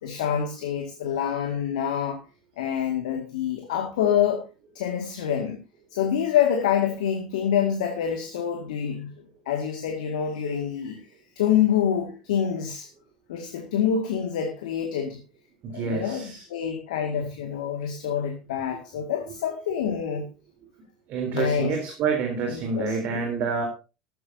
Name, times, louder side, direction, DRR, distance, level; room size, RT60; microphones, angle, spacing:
voice 1, 0.0-2.2 2.6-4.4 4.7-5.6 5.9-9.1 9.5-11.0 11.4-12.9 13.3-15.2 15.7-20.3 21.3-21.7 22.5-23.3, left 8 dB, 75° left, 4 dB, 2.1 m, -26 dB
voice 2, 15.6-16.4 21.1-23.6, right 5 dB, 50° right, 3 dB, 3.8 m, -28 dB
14.0 x 13.5 x 2.8 m, 0.31 s
hypercardioid pair, 70°, 4 cm